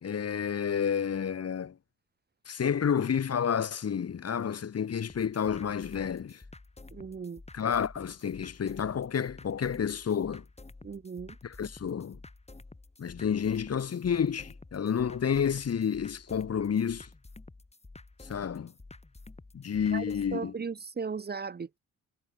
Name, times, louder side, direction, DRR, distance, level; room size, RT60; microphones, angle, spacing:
voice 1, 0.0-1.7 2.5-6.4 7.5-10.4 11.4-12.2 13.0-17.1 18.3-18.7 19.5-20.5, left 7 dB, 50° left, 2.7 m, -30 dB
sound 1, 5.1-20.3, left 2 dB, 20° left, 4.4 m, -51 dB
voice 2, 6.9-7.4 10.8-11.4 19.9-20.0 20.3-21.8, right 5 dB, 30° right, 1.0 m, -37 dB
supercardioid pair, 65°, 31 cm